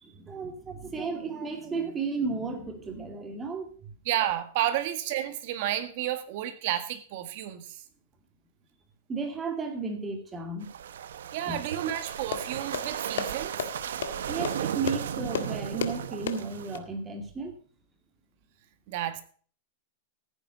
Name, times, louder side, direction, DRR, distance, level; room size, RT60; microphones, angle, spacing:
voice 1, 0.0-3.9 9.1-10.7 11.5-11.6 14.3-17.5, right 4 dB, 15° right, 5 dB, 2.3 m, -34 dB
voice 2, 4.0-7.7 11.3-13.6 18.9-19.2, right 12 dB, 50° right, 10 dB, 1.8 m, -31 dB
sound 1, 10.6-16.8, right 9 dB, 85° right, 1.0 m, -35 dB
sound 2, 11.9-16.8, left 7 dB, 80° left, 1.7 m, -36 dB
15.0 x 9.7 x 4.0 m, 0.43 s
supercardioid pair, 160°, 0 cm